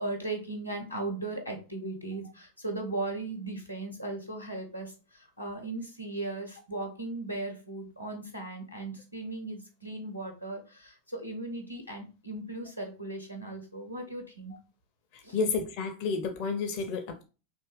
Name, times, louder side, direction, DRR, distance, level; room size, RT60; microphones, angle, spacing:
voice 1, 0.0-14.6 15.2-15.4, right 2 dB, 90° left, 0.8 m, -37 dB
voice 2, 15.3-17.2, left 4 dB, 45° left, 0.5 m, -30 dB
3.4 x 2.7 x 3.3 m
figure-of-eight pair, 90°, 0 cm